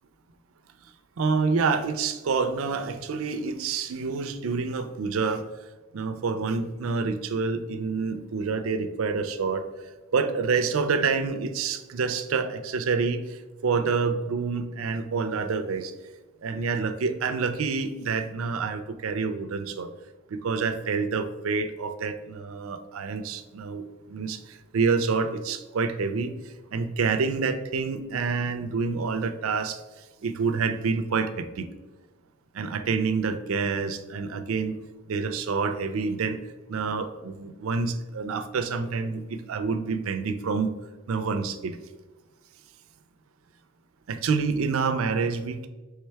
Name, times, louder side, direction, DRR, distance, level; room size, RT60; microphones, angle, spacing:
voice 1, 1.2-5.5 5.9-9.6 10.1-15.9 16.4-19.9 20.3-29.8 30.2-31.7 32.5-34.8 35.1-36.4 36.7-40.7 41.1-41.8 44.1-45.7, right 4 dB, 75° right, 9 dB, 0.4 m, -27 dB
4.4 x 3.5 x 3.3 m, 1.2 s
head